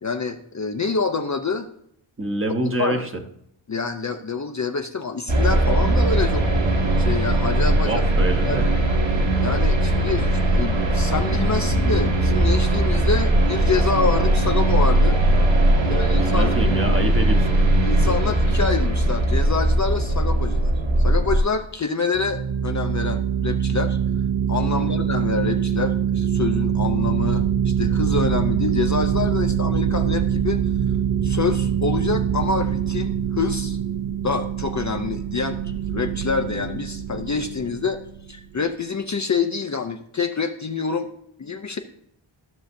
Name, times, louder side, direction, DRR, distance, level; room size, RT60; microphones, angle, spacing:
voice 1, 0.0-1.7 2.8-3.0 3.7-8.0 8.4-8.7 9.4-15.2 15.9-16.5 17.8-20.7 21.0-24.0 24.5-30.6 31.2-33.8 34.2-38.0 38.3-41.1 41.4-41.8, left 4 dB, 35° left, 5 dB, 0.5 m, -26 dB
voice 2, 2.2-3.1 7.8-8.7 15.8-17.5 24.7-25.0, right 1 dB, 25° right, 3 dB, 1.0 m, -26 dB
sound 1, 5.3-21.4, right 1 dB, 60° right, 1.7 m, -19 dB
sound 2, 22.1-38.4, right 8 dB, 85° right, 0.7 m, -24 dB
14.0 x 6.4 x 2.6 m, 0.74 s
wide cardioid pair, 130°, 50 cm